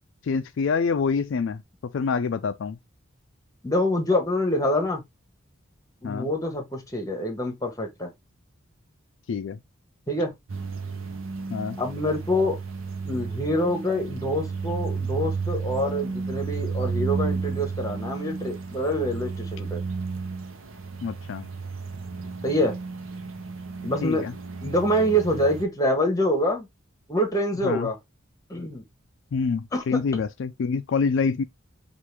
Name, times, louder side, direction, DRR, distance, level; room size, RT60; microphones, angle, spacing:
voice 1, 0.3-1.6 1.9-2.8 6.0-6.3 9.3-9.6 11.5-11.8 21.0-21.4 24.0-24.3 27.6-27.9 29.3-31.4, left 5 dB, 65° left, 0.3 m, -26 dB
voice 2, 3.6-5.0 6.0-8.1 10.1-10.3 11.8-12.6 13.0-19.8 22.4-22.8 23.8-24.3 24.6-26.7 27.1-28.0 28.5-28.8 29.7-30.0, equal, 15° left, 1.0 m, -26 dB
sound 1, 10.5-25.6, right 4 dB, 80° right, 0.7 m, -32 dB
4.6 x 2.5 x 3.2 m
head